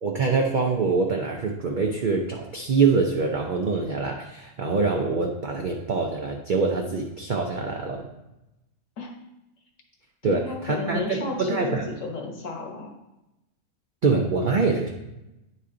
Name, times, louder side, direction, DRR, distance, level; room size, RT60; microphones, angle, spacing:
voice 1, 0.0-8.1 10.2-11.9 14.0-14.9, right 4 dB, 50° right, 1 dB, 0.6 m, -24 dB
voice 2, 10.2-12.9, left 3 dB, 65° left, 1 dB, 1.6 m, -32 dB
9.7 x 4.3 x 3.8 m, 0.94 s
omnidirectional pair, 1.5 m